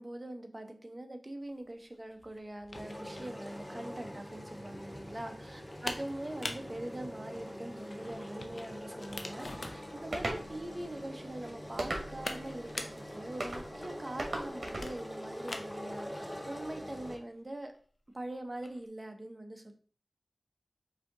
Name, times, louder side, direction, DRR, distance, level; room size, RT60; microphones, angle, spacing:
voice 1, 0.0-17.7 18.1-19.7, right 1 dB, 30° right, 5 dB, 0.8 m, -43 dB
sound 1, 1.5-18.9, left 2 dB, 65° left, 0.6 m, -47 dB
sound 2, 2.7-17.2, equal, 15° left, 0.7 m, -44 dB
sound 3, 10.1-10.4 11.8-12.4 13.4-13.6 14.2-14.9, right 2 dB, 75° right, 1.1 m, -36 dB
4.9 x 2.8 x 3.7 m, 0.42 s
wide cardioid pair, 50°, 0 cm